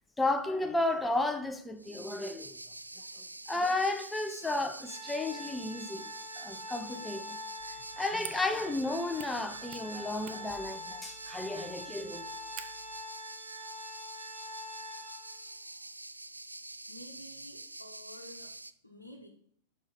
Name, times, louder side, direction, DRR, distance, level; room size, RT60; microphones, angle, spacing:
voice 1, 0.2-2.6 3.5-7.4 7.7-12.3, left 2 dB, 10° left, 0.6 m, -33 dB
sound 1, 1.8-18.7, right 2 dB, 85° right, 0.3 m, -46 dB
Organ, 4.8-15.5, left 1 dB, 20° right, 2.0 m, -45 dB
sound 2, 7.6-13.0, right 11 dB, 40° right, 0.6 m, -51 dB
voice 2, 16.9-18.5 18.8-19.3, left 1 dB, 85° left, 0.9 m, -50 dB
5.3 x 5.3 x 5.2 m
figure-of-eight pair, 100°, 0 cm